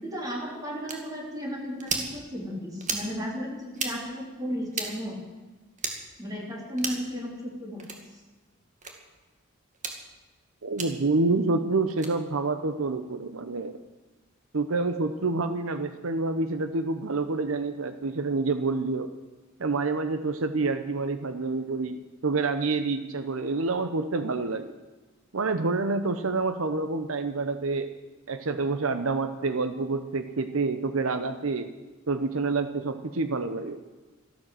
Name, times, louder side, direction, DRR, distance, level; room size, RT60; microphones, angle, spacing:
voice 1, 0.0-5.2 6.2-7.8, equal, 20° right, -2 dB, 3.3 m, -34 dB
sound 1, 0.9-1.0 1.8-2.1 2.8-3.1 3.7-3.9 4.7-4.9 5.8-6.0 6.8-7.1 7.8-8.0 8.8-8.9 9.7-10.0 10.8-10.9 11.9-12.1, right 5 dB, 35° right, 2.1 m, -32 dB
voice 2, 10.6-13.8 14.5-19.1 19.6-24.7 25.3-27.9 28.3-31.7 32.1-33.8, right 3 dB, 90° right, 9 dB, 0.9 m, -28 dB
14.0 x 12.0 x 7.7 m, 1.2 s
head